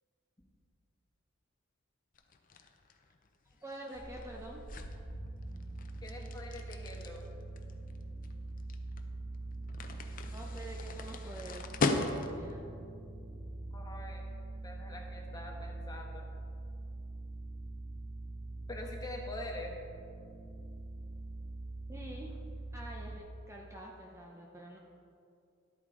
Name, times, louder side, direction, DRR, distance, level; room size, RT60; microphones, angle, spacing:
sound 1, 2.1-12.6, left 3 dB, 45° left, 0.6 m, -39 dB
voice 1, 3.6-4.6 10.2-12.6 21.9-22.4 22.7-24.8, right 1 dB, 15° right, -1 dB, 0.7 m, -47 dB
sound 2, 3.9-23.2, right 2 dB, 30° right, 1.0 m, -44 dB
voice 2, 6.0-7.2 13.7-14.3 14.6-16.2 18.7-19.8, left 2 dB, 20° left, 0 dB, 1.2 m, -44 dB
11.5 x 8.4 x 3.7 m, 2.5 s
head